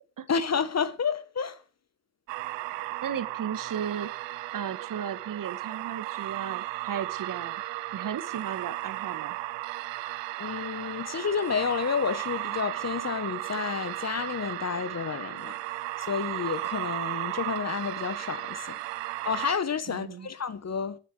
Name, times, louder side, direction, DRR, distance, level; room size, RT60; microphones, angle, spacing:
voice 1, 0.3-1.6 10.4-15.6 16.1-18.8 19.2-21.0, left 6 dB, 35° left, 1.3 m, -30 dB
sound 1, 2.3-19.5, right 18 dB, 70° right, 0.9 m, -35 dB
voice 2, 2.7-4.1 4.5-7.6 7.9-9.4 19.9-20.3, right 8 dB, 45° right, 1.5 m, -35 dB
22.0 x 7.5 x 3.5 m
hypercardioid pair, 45°, 44 cm